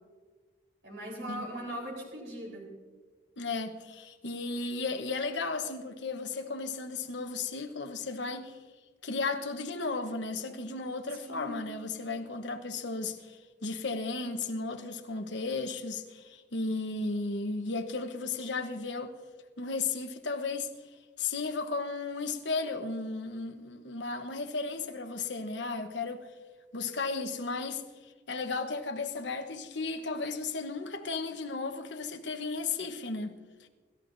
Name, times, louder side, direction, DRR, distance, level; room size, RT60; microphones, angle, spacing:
voice 1, 0.8-2.7 11.2-11.6, equal, 85° right, 4.1 m, -39 dB
voice 2, 3.4-8.6 9.0-19.1 19.6-20.7 21.2-26.2 26.7-33.3 33.6-33.7, left 3 dB, 80° left, 1.1 m, -34 dB
26.5 x 13.5 x 2.7 m
head